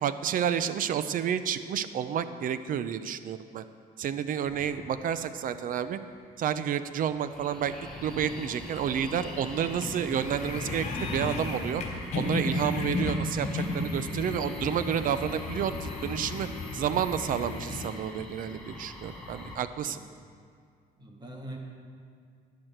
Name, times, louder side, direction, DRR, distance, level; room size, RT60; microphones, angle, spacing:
voice 1, 0.0-3.6 4.0-6.0 6.4-7.7 8.0-11.8 12.1-16.5 16.7-20.0, right 8 dB, 55° right, 12 dB, 0.7 m, -30 dB
sound 1, 4.4-6.6 6.9-19.6, left 1 dB, 5° left, 2.8 m, -44 dB
sound 2, 8.1-17.9, left 3 dB, 45° left, 4.0 m, -34 dB
voice 2, 21.0-21.6, right 1 dB, 25° right, 0 dB, 2.1 m, -44 dB
14.0 x 10.5 x 4.6 m, 2.2 s
cardioid pair, 110°, 17 cm